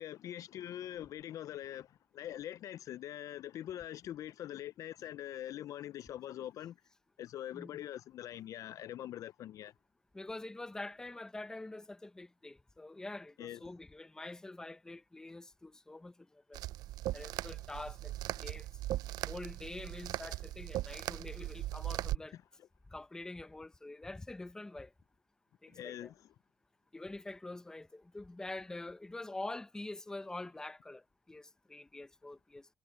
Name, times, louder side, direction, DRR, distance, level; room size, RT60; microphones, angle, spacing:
voice 1, 0.0-6.8 7.2-9.7 13.4-13.6 22.3-22.4 25.7-26.3, left 12 dB, 55° left, 0.3 m, -43 dB
voice 2, 10.1-16.1 16.5-16.6 17.1-18.1 18.4-18.7 19.3-22.4 22.9-24.9 25.6-26.1 26.9-31.0 31.3-32.7, left 2 dB, 10° left, 0.6 m, -45 dB
sound 1, 16.5-22.2, right 15 dB, 80° right, 0.4 m, -39 dB
cardioid pair, 155°, 7 cm